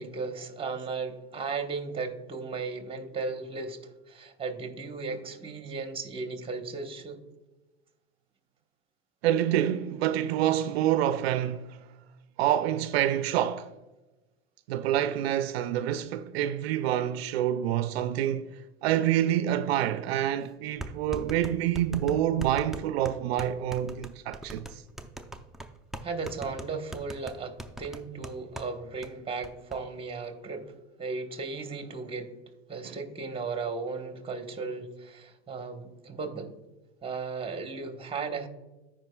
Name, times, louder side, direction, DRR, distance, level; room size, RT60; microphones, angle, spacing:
voice 1, 0.0-7.2 26.0-30.7 31.0-32.3 32.7-36.5 37.0-38.5, right 4 dB, 15° right, 1.2 m, -36 dB
voice 2, 9.2-11.8 12.4-13.7 14.7-18.5 18.8-24.8 32.9-33.0, right 11 dB, 80° right, 0.5 m, -27 dB
sound 1, 19.9-20.0 20.8-28.7 29.0-29.1 29.4-29.8, right 1 dB, ahead, 0.5 m, -40 dB
14.0 x 5.0 x 2.3 m
hypercardioid pair, 95°, 31 cm